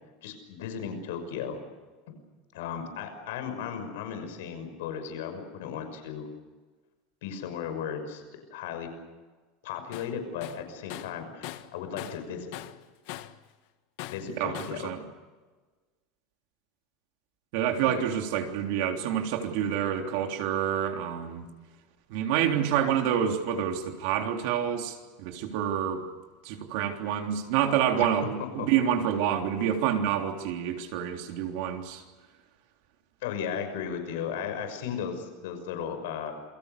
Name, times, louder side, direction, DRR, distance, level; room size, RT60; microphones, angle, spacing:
voice 1, 0.2-1.6 2.1-2.2 2.5-6.3 7.2-8.2 8.5-8.9 9.6-11.5 11.7-12.5 14.1-14.9 17.8-17.9 28.0-28.1 28.4-28.7 33.2-36.3, left 7 dB, 80° left, 7 dB, 6.1 m, -35 dB
Tools, 9.9-10.1 10.4-12.3 12.5-13.4 14.0-14.8, left 15 dB, 55° left, 1.4 m, -41 dB
voice 2, 14.4-15.0 17.5-21.5 22.1-26.0 26.4-32.0, right 9 dB, 55° right, 3 dB, 3.4 m, -28 dB
28.0 x 23.5 x 6.8 m, 1.3 s
supercardioid pair, 175°, 0 cm